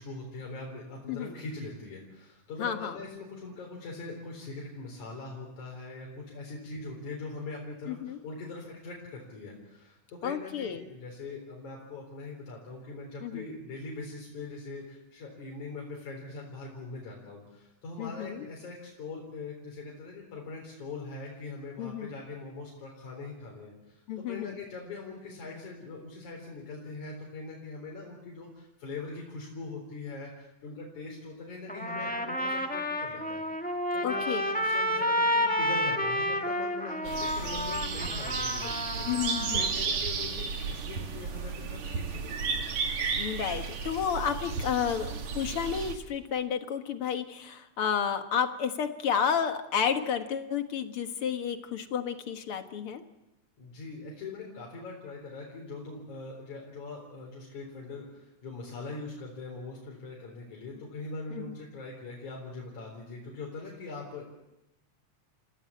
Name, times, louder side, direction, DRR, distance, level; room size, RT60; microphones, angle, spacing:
voice 1, 0.0-33.4 33.9-39.1 39.5-42.6 53.6-64.2, left 3 dB, 85° left, -1 dB, 5.4 m, -42 dB
voice 2, 2.6-3.0 7.9-8.2 10.2-10.8 13.2-13.5 18.0-18.5 21.8-22.1 24.1-24.6 34.0-34.4 39.1-39.7 43.2-53.0 61.3-61.6, left 7 dB, 55° left, 7 dB, 2.1 m, -31 dB
Trumpet, 31.7-39.7, equal, 5° left, 0.8 m, -30 dB
sound 1, 37.1-46.0, right 5 dB, 70° right, 3.5 m, -33 dB
29.5 x 17.0 x 8.5 m, 0.93 s
omnidirectional pair, 3.3 m